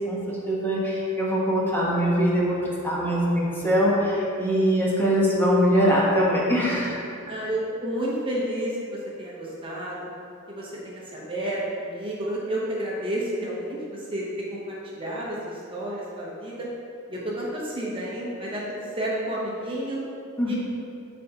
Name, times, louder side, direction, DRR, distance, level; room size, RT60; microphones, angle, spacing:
voice 1, 0.1-7.0 20.4-20.5, equal, 10° left, -6 dB, 1.1 m, -22 dB
voice 2, 7.3-10.1 10.5-14.2 14.5-16.7 17.1-20.0 20.4-20.5, right 1 dB, 25° right, -5 dB, 0.9 m, -31 dB
10.0 x 4.3 x 2.9 m, 2.7 s
head